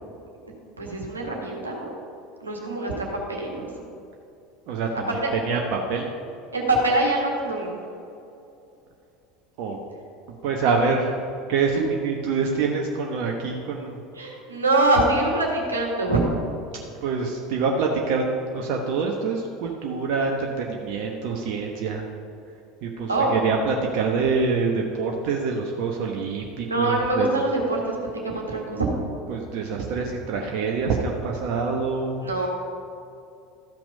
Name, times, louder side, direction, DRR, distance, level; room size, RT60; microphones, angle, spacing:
voice 1, 0.8-1.9 2.4-3.7 5.1-5.3 6.5-7.7 11.7-11.8 14.2-16.2 23.1-23.3 26.6-28.0 28.2-28.9 32.2-32.5, right 2 dB, 85° right, -1 dB, 1.7 m, -24 dB
voice 2, 4.7-6.1 9.6-9.8 10.4-11.2 11.5-14.0 17.0-18.3 18.5-22.1 22.8-27.4 29.3-32.2, right 4 dB, 55° right, 1 dB, 1.0 m, -26 dB
13.5 x 6.0 x 5.4 m, 2.6 s
figure-of-eight pair, 75°, 0 cm